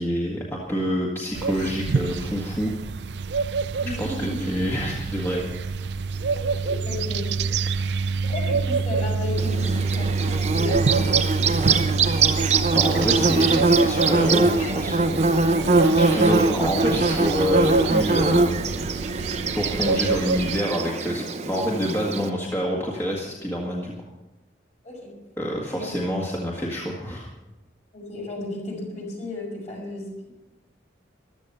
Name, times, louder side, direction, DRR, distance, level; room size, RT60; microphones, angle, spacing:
voice 1, 0.0-2.7 4.0-5.6 12.7-15.0 16.0-18.9 19.5-23.9 25.4-27.3, equal, 15° left, -3 dB, 1.8 m, -27 dB
sound 1, 1.3-20.6, right 4 dB, 70° right, 0.5 m, -27 dB
voice 2, 3.8-4.4 6.3-7.5 7.8-11.1 24.8-25.0 25.7-25.9 27.9-30.3, left 2 dB, 40° left, -1 dB, 5.6 m, -34 dB
Bird / Buzz, 9.4-22.3, right 3 dB, 35° right, 0.9 m, -22 dB
15.0 x 12.5 x 5.7 m, 1.0 s
head